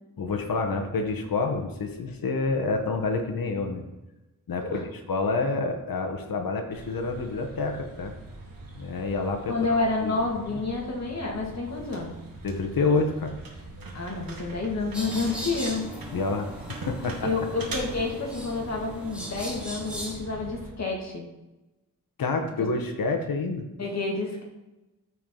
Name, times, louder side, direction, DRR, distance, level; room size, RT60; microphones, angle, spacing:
voice 1, 0.2-3.8 4.5-4.8 5.1-8.1 8.7-9.8 10.0-10.2 10.5-10.6 12.4-13.3 16.1-16.5 16.9-17.3 22.2-23.7, left 3 dB, 80° left, 4 dB, 1.1 m, -28 dB
sound 1, 6.7-20.7, right 3 dB, 85° right, 1.7 m, -42 dB
voice 2, 9.5-12.1 13.9-15.9 17.2-21.3 22.6-22.7 23.8-24.4, left 3 dB, 50° left, -1 dB, 2.0 m, -29 dB
sound 2, 14.9-20.1, right 1 dB, 5° right, 2.0 m, -38 dB
14.0 x 4.6 x 3.8 m, 1.0 s
wide cardioid pair, 115°, 34 cm